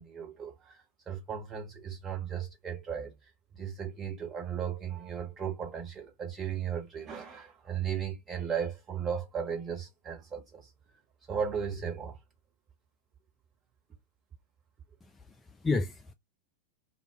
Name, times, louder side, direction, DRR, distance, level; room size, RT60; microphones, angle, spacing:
voice 1, 0.0-3.1 3.5-10.7 11.3-12.2, right 7 dB, 25° right, 1.2 m, -36 dB
voice 2, 15.0-16.1, left 3 dB, 15° left, 0.3 m, -32 dB
2.2 x 2.1 x 3.6 m
figure-of-eight pair, 90°, 0 cm